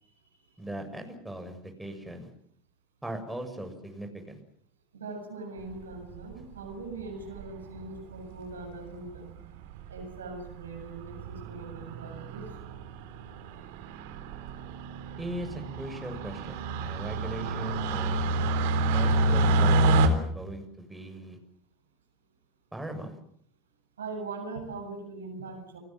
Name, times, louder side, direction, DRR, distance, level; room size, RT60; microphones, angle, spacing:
voice 1, 0.6-2.3 3.0-4.4 15.2-18.6 18.9-21.4 22.7-23.2, right 1 dB, 5° right, 5 dB, 7.0 m, -39 dB
voice 2, 4.9-9.3 9.9-12.5 14.5-14.6 18.1-18.9 24.0-25.8, right 3 dB, 90° right, 3 dB, 7.9 m, -41 dB
sound 1, 5.9-6.4 7.4-7.8 8.6-8.7 8.9-9.0 9.3-9.4 9.7-10.0 10.4-10.7 11.0-20.1, right 2 dB, 70° right, 3.7 m, -28 dB
29.5 x 19.5 x 7.8 m, 0.65 s
hypercardioid pair, 80°, 0 cm